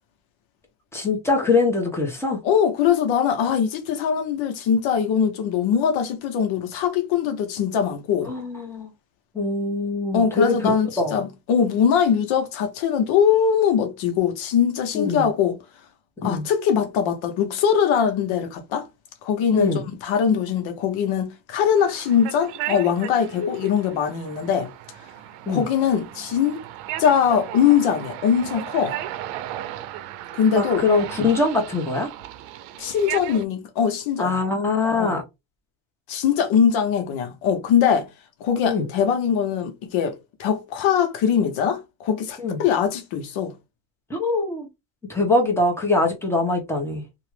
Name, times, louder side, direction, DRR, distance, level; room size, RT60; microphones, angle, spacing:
voice 1, 0.9-2.4 8.2-8.9 9.3-11.2 14.9-15.3 16.2-16.5 19.5-19.9 23.4-23.5 25.5-25.6 30.5-32.1 34.2-35.2 38.7-38.9 42.4-42.6 44.1-44.7 45.1-47.0, left 3 dB, 5° left, 1.1 m, -23 dB
voice 2, 2.4-8.3 10.1-15.6 16.2-18.9 19.2-24.7 25.5-26.6 27.0-29.0 30.3-30.9 32.8-34.3 34.8-35.2 36.1-38.1 38.4-43.5, left 7 dB, 70° left, 0.9 m, -22 dB
sound 1, 21.8-33.4, right 13 dB, 80° right, 0.6 m, -36 dB
2.9 x 2.5 x 3.2 m
cardioid pair, 120°, 49 cm